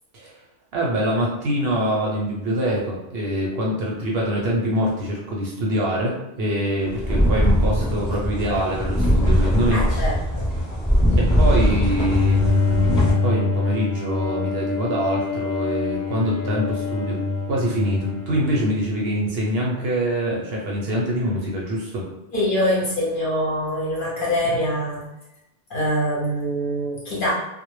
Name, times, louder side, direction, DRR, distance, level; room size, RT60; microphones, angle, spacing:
voice 1, 0.7-9.8 11.2-17.2 17.5-22.0, equal, 65° right, -3 dB, 0.7 m, -24 dB
sound 1, 6.8-13.1, equal, 15° left, 0.8 m, -20 dB
voice 2, 9.7-10.5 11.6-11.7 22.3-25.1 25.7-27.3, equal, 55° left, -6 dB, 0.8 m, -24 dB
Bowed string instrument, 12.0-19.3, left 4 dB, 10° right, 0.4 m, -25 dB
2.0 x 2.0 x 3.0 m, 0.90 s
omnidirectional pair, 1.2 m